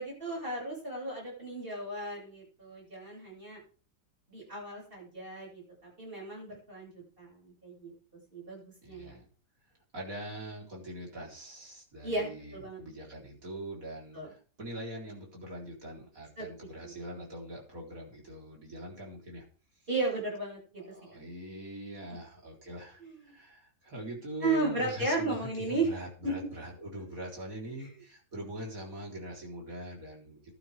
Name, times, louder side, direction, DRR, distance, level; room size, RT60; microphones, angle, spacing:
voice 1, 0.0-3.6 4.3-5.6 6.0-7.9 8.3-9.2 12.0-12.8 14.1-14.3 16.4-17.0 19.9-20.8 23.0-23.3 24.4-25.9 26.2-26.3, right 3 dB, 30° right, -2 dB, 7.4 m, -35 dB
voice 2, 8.8-9.3 9.9-19.4 20.8-30.5, equal, 55° right, -2 dB, 4.7 m, -43 dB
16.0 x 11.5 x 3.6 m, 0.40 s
omnidirectional pair, 1.8 m